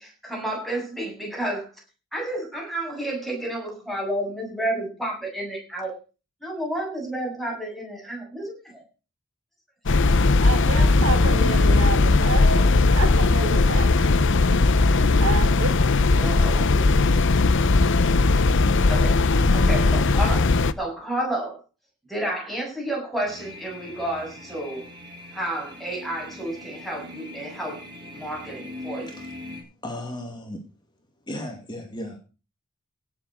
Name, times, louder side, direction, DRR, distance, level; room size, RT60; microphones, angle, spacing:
voice 1, 0.0-1.7 2.1-6.0 6.4-8.8 10.7-10.8 11.4-11.5 13.9-14.1 16.2-16.8 17.1-17.4 18.9-19.1 19.5-20.4 20.8-21.6 22.1-24.8 25.3-27.8 28.1-29.1, right 1 dB, ahead, -1 dB, 7.7 m, -31 dB
sound 1, 9.9-20.7, left 3 dB, 60° left, 0.8 m, -18 dB
voice 2, 10.4-14.2 15.2-16.4, right 3 dB, 85° right, 8 dB, 3.3 m, -30 dB
sound 2, 23.2-29.6, left 1 dB, 20° right, 6.4 m, -41 dB
voice 3, 29.8-30.6 31.3-32.2, left 1 dB, 20° left, 4 dB, 2.4 m, -35 dB
17.0 x 7.7 x 6.5 m, 0.34 s
head